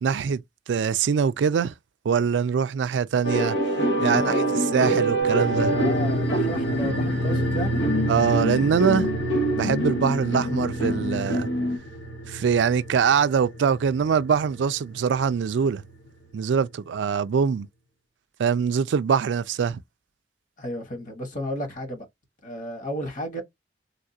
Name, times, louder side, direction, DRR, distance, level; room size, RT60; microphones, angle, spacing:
voice 1, 0.0-0.4 0.7-1.7 2.1-3.6 4.0-4.4 4.7-5.8 8.1-9.1 9.6-11.5 12.3-15.8 16.3-17.7 18.4-19.8, right 6 dB, 80° right, 0.3 m, -23 dB
sound 1, 3.2-11.8, right 1 dB, 90° left, 1.0 m, -25 dB
voice 2, 4.0-4.6 5.7-7.8 20.6-22.1 22.4-23.4, equal, 45° left, 1.2 m, -33 dB
sound 2, 5.2-16.1 16.4-16.5, equal, 65° left, 1.5 m, -31 dB
3.5 x 2.4 x 2.6 m
head